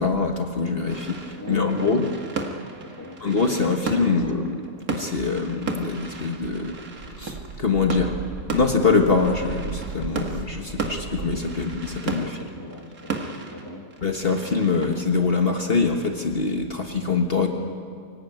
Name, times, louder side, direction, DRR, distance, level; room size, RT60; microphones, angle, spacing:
voice 1, 0.0-2.0 3.2-4.6 4.9-6.8 7.2-8.2 8.5-12.4 14.0-17.5, left 4 dB, 45° left, 4 dB, 1.5 m, -24 dB
sound 1, 0.9-16.2, right 4 dB, 85° right, 2.2 m, -35 dB
voice 2, 1.4-2.2 2.8-3.3 12.1-13.9, left 2 dB, 15° left, 4 dB, 1.6 m, -39 dB
sound 2, 6.4-11.4, right 5 dB, 55° right, 1.3 m, -36 dB
24.0 x 16.5 x 9.1 m, 2.2 s
omnidirectional pair, 1.5 m